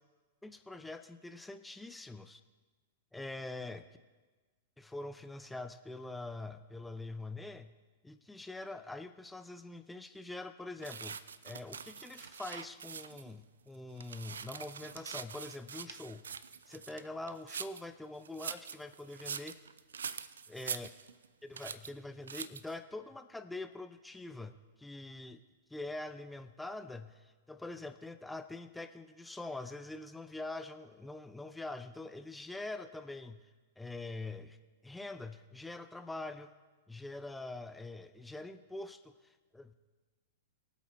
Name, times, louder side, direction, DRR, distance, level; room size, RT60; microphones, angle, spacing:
voice 1, 0.4-2.4 3.1-3.9 4.8-7.7 8.0-11.2 11.4-16.2 16.7-19.6 20.5-20.9 21.4-25.4 25.7-33.4 33.8-34.6 34.8-36.5 36.9-39.1 39.5-39.7, left 2 dB, 5° left, 10 dB, 0.6 m, -44 dB
sound 1, 10.8-13.3 13.7-17.9 18.2-21.3 21.6-21.9 22.3-22.8, right 6 dB, 70° right, 0.4 m, -44 dB
23.0 x 8.2 x 3.1 m, 1.3 s
figure-of-eight pair, 100°, 0 cm